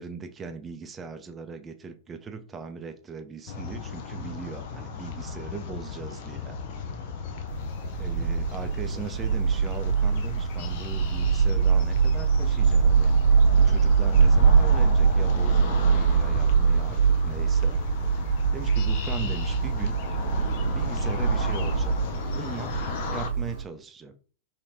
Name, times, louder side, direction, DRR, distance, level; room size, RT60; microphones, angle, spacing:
voice 1, 0.0-6.6 8.0-13.1 13.6-17.8 18.5-20.0 20.7-22.0 22.3-24.1, right 5 dB, 20° right, 0.5 m, -39 dB
sound 1, 3.5-23.3, left 3 dB, 50° left, 0.4 m, -34 dB
sound 2, 7.5-23.6, right 6 dB, 55° right, 0.9 m, -23 dB
3.2 x 3.1 x 2.6 m
figure-of-eight pair, 90°, 0 cm